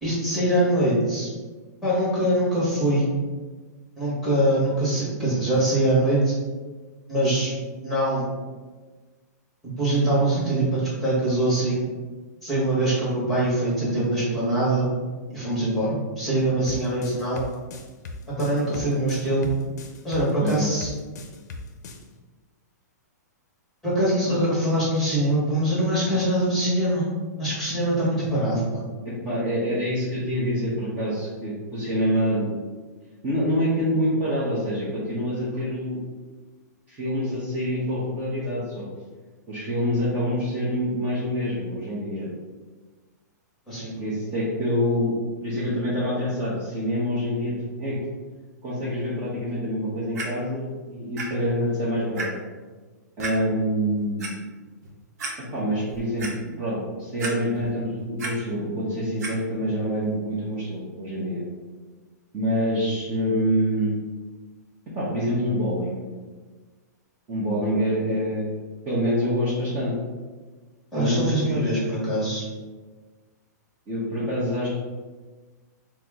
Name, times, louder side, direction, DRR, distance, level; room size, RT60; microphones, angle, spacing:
voice 1, 0.0-1.3 1.8-3.1 4.0-6.3 7.1-7.5 7.8-8.2 9.8-11.8 12.4-14.9 15.3-17.4 18.4-19.5 20.0-20.9 23.8-27.1 27.4-28.8 43.7-43.9 70.9-72.4, right 1 dB, ahead, -8 dB, 1.3 m, -23 dB
sound 1, 16.7-22.0, left 3 dB, 65° left, 0.5 m, -39 dB
voice 2, 29.0-32.5 33.2-36.0 36.9-38.8 39.5-42.3 44.0-48.0 48.6-52.3 53.2-54.4 55.5-61.4 62.3-63.9 64.9-66.0 67.3-68.5 68.9-69.9 70.9-71.7 73.9-74.7, equal, 20° right, -9 dB, 0.8 m, -26 dB
Clock, 50.1-50.2 51.2-51.3 51.7-51.8 52.2-52.3 53.2-53.3 54.0-54.3 54.8-54.9 55.2-55.3 55.8-56.3 57.2-57.7 58.0-58.3 59.2-59.3 60.0-60.1, right 3 dB, 60° right, 0.8 m, -32 dB
4.2 x 2.0 x 3.6 m, 1.3 s
hypercardioid pair, 155°, 10 cm